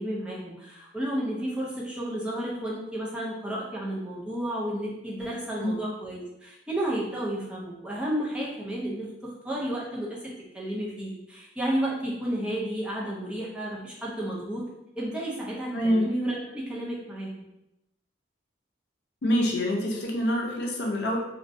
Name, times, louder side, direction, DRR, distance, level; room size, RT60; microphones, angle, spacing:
voice 1, 0.0-10.2 10.5-14.7 15.0-17.3, right 1 dB, 5° right, -6 dB, 0.4 m, -32 dB
voice 2, 15.7-16.1 19.2-21.2, equal, 65° left, -1 dB, 0.5 m, -26 dB
2.5 x 2.0 x 2.6 m, 0.90 s
head